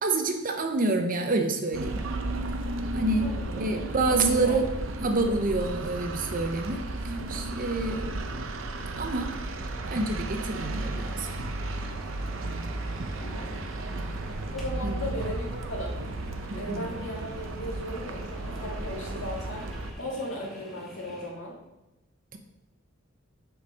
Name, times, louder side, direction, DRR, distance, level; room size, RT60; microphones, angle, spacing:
voice 1, 0.0-2.0 2.9-3.3 3.5-4.7 5.0-8.1 9.0-9.3 9.8-11.3 14.8-15.0 16.5-16.9 22.3-22.4, right 2 dB, 45° right, 5 dB, 0.8 m, -28 dB
sound 1, 1.7-19.9, right 2 dB, 80° right, 0.7 m, -34 dB
voice 2, 3.2-3.8 4.2-4.6 13.2-13.6 14.5-16.0 16.5-19.6 20.0-21.5, equal, 75° left, -3 dB, 2.0 m, -36 dB
supermarket fridge, 10.9-21.3, equal, ahead, 1.3 m, -47 dB
6.9 x 4.8 x 5.1 m, 0.98 s
head